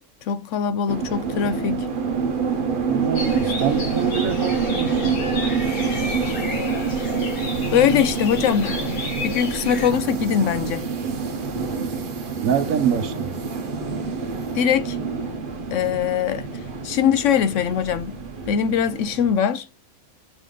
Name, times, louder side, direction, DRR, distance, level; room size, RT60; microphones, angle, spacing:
voice 1, 0.2-1.9 7.7-10.8 14.5-15.0 15.7-16.4 16.8-18.2 18.4-19.7, left 8 dB, 70° left, 0.8 m, -22 dB
sound 1, 0.9-19.3, right 5 dB, 45° right, 0.9 m, -27 dB
voice 2, 2.9-5.2 12.4-13.4, right 9 dB, 75° right, 1.1 m, -25 dB
sound 2, 3.1-9.9, left 3 dB, 85° left, 2.0 m, -32 dB
4.9 x 3.8 x 5.0 m
omnidirectional pair, 1.5 m